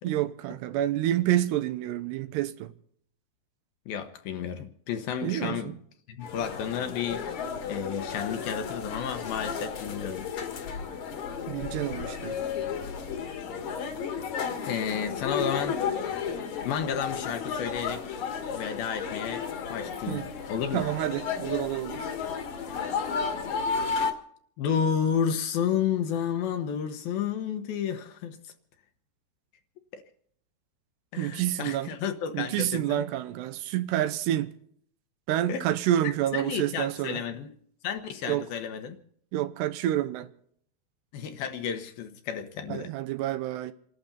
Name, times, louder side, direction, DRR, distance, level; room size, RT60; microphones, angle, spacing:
voice 1, 0.0-2.7 5.2-5.7 11.5-12.4 20.1-20.3 20.7-22.1 31.2-32.0 32.3-34.5 35.3-37.2 38.3-38.5 39.3-40.3 42.7-43.7, right 13 dB, 80° right, 2.9 m, -28 dB
voice 2, 3.9-5.7 6.1-7.4 7.7-10.3 14.6-15.8 16.7-18.2 18.5-20.8 24.6-28.4 29.9-30.0 31.1-33.0 35.5-35.6 36.3-37.5 37.8-39.0 41.1-42.9, left 8 dB, 70° left, 2.6 m, -31 dB
sound 1, 6.2-24.1, left 6 dB, 55° left, 2.4 m, -33 dB
28.0 x 12.0 x 4.1 m
omnidirectional pair, 4.9 m